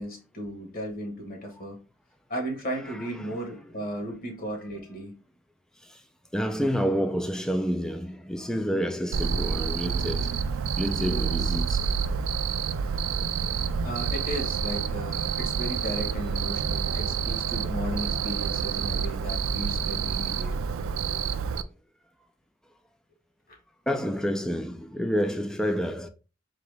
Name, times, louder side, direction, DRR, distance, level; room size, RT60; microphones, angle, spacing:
voice 1, 0.0-1.8 2.3-5.1 13.8-20.6 23.5-23.6, equal, 45° left, 1.3 m, -35 dB
voice 2, 2.8-3.4 6.3-10.4 10.8-11.9 17.1-17.2 21.5-21.7 23.9-26.1, equal, 5° left, 0.4 m, -29 dB
Cricket, 9.1-21.6, right 6 dB, 80° right, 0.4 m, -28 dB
3.9 x 2.9 x 3.4 m
head